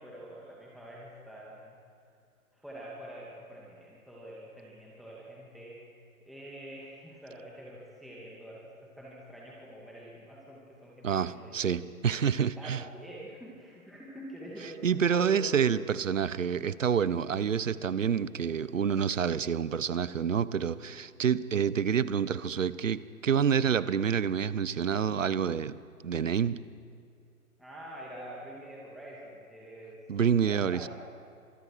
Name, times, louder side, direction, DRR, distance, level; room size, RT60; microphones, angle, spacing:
voice 1, 0.0-1.7 2.5-5.8 6.2-8.6 9.0-11.9 12.6-15.8 18.4-18.9 27.6-30.0 30.5-30.9, right 1 dB, ahead, -5 dB, 2.6 m, -46 dB
voice 2, 11.0-12.8 14.8-26.6 30.1-30.9, right 7 dB, 60° right, 17 dB, 1.1 m, -28 dB
30.0 x 26.5 x 5.0 m, 2.3 s
figure-of-eight pair, 130°, 44 cm